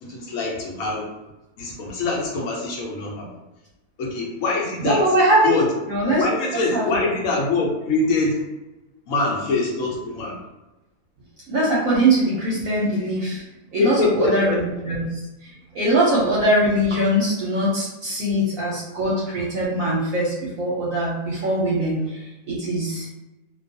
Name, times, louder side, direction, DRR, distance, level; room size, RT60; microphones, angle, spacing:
voice 1, 0.0-1.1 1.6-3.3 4.0-5.1 5.4-5.7 6.1-8.4 9.1-10.4 13.8-14.8 22.0-22.1, left 3 dB, 65° left, -2 dB, 1.0 m, -24 dB
voice 2, 4.8-5.5 5.9-6.2 6.7-6.8 11.5-13.4 13.7-15.2 15.7-23.1, right 1 dB, 70° right, -5 dB, 0.9 m, -21 dB
2.5 x 2.3 x 2.6 m, 1.0 s
omnidirectional pair, 1.6 m